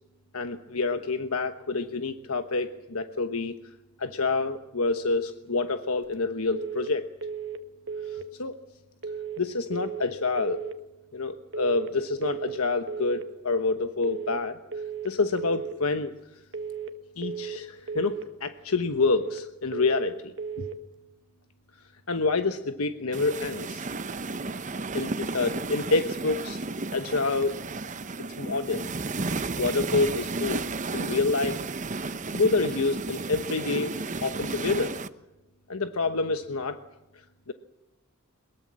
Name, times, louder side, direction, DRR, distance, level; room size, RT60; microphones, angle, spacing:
voice 1, 0.3-3.5 4.0-7.1 8.4-8.6 9.4-10.6 11.1-14.6 15.0-16.1 17.2-18.2 18.4-20.3 22.1-23.8 24.9-26.6 26.9-27.5 28.4-28.9 29.6-30.6 30.9-31.6 32.3-33.9 34.2-35.0 35.7-36.8 37.5-37.6, left 3 dB, 80° left, 8 dB, 1.2 m, -27 dB
sound 1, 6.5-6.9 7.2-7.6 7.9-8.3 9.0-9.4 9.7-10.1 10.4-10.8 11.5-11.9 12.2-12.6 12.9-13.3 14.0-14.4 14.7-15.1 15.4-15.8 16.5-16.9 17.2-17.6 17.9-18.3 19.0-19.4 19.7-20.1 20.4-20.8, right 6 dB, 55° right, 1.6 m, -35 dB
sound 2, 23.1-35.1, right 3 dB, 35° right, 0.9 m, -33 dB
22.5 x 22.0 x 7.6 m, 0.98 s
head